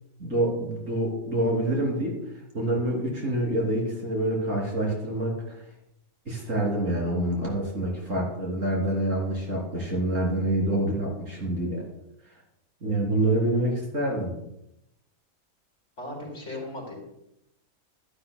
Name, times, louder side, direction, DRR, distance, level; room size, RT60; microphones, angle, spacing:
voice 1, 0.2-2.2 2.5-5.6 6.2-11.8 12.8-14.3 16.5-16.6, right 1 dB, 65° right, -3 dB, 3.5 m, -26 dB
voice 2, 16.0-16.9, left 1 dB, 60° left, -4 dB, 4.0 m, -37 dB
12.5 x 12.0 x 2.2 m, 0.83 s
omnidirectional pair, 1.5 m